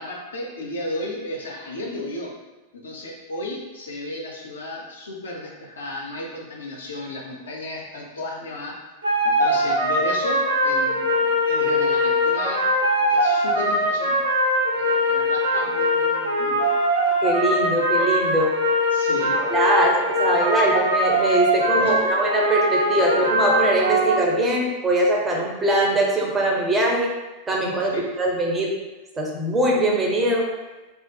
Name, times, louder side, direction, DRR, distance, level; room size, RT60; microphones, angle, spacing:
voice 1, 0.0-2.3 2.7-8.8 9.2-12.7 13.0-14.2 14.6-16.7 18.9-19.4 21.8-22.0 27.9-28.1, left 1 dB, 70° left, -2 dB, 0.5 m, -33 dB
sound 1, 9.0-24.1, equal, 75° right, 0.6 m, -21 dB
voice 2, 17.2-18.5 19.5-27.1 27.5-28.7 29.2-30.5, right 1 dB, 15° right, -2 dB, 0.5 m, -22 dB
2.5 x 2.3 x 2.2 m, 1.2 s
figure-of-eight pair, 90°, 0 cm